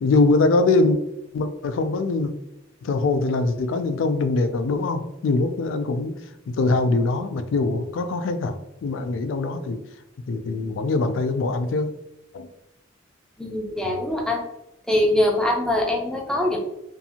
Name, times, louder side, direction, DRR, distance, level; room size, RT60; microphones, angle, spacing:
voice 1, 0.0-1.0 1.3-2.3 2.8-6.1 6.5-8.5 8.8-9.8 10.3-11.9 12.3-12.5, left 3 dB, 70° left, 10 dB, 0.3 m, -22 dB
voice 2, 13.4-14.5 14.9-16.6, left 1 dB, 5° left, 0 dB, 0.4 m, -23 dB
2.6 x 2.4 x 2.7 m, 0.88 s
head